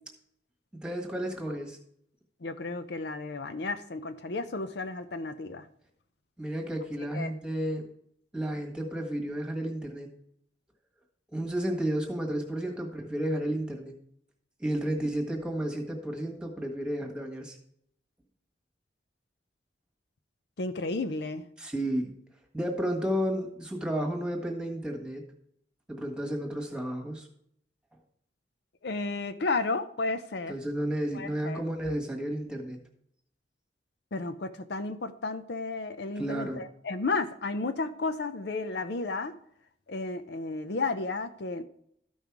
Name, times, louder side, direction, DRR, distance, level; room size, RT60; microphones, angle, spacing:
voice 1, 0.7-1.8 6.4-7.9 8.3-10.1 11.3-13.9 14.6-17.5 21.6-22.1 22.5-25.2 25.9-27.3 30.5-32.8 36.1-36.6, right 1 dB, 5° right, 2 dB, 1.5 m, -32 dB
voice 2, 2.4-5.6 7.1-7.3 20.6-21.4 28.8-30.5 31.1-31.6 34.1-39.3 39.9-41.6, left 3 dB, 60° left, 9 dB, 0.6 m, -33 dB
13.0 x 5.5 x 4.7 m, 0.70 s
head